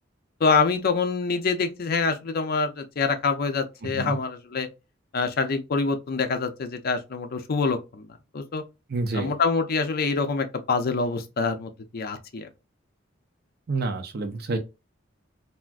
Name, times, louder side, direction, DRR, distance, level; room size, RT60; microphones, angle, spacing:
voice 1, 0.4-4.7 5.1-8.1 8.3-8.6 9.1-12.5, left 4 dB, 50° left, 0.5 m, -25 dB
voice 2, 3.8-4.2 8.9-9.3 13.7-14.6, right 3 dB, 55° right, 0.6 m, -28 dB
3.4 x 2.5 x 2.4 m
head